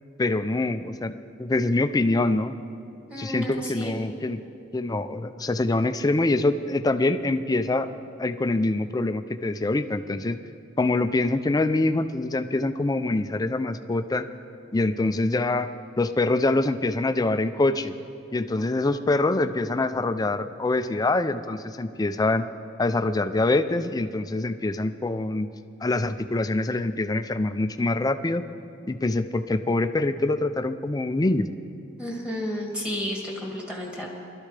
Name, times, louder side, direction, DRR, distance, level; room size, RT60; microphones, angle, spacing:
voice 1, 0.2-2.5 3.2-4.4 4.7-7.9 8.2-10.4 10.8-14.3 14.7-15.7 16.0-17.9 18.3-22.5 22.8-25.5 25.8-28.4 28.9-31.5, left 2 dB, 20° left, 10 dB, 0.4 m, -25 dB
voice 2, 3.1-4.0 32.0-34.2, left 1 dB, 5° right, -2 dB, 2.1 m, -32 dB
20.5 x 12.5 x 3.3 m, 2.6 s
head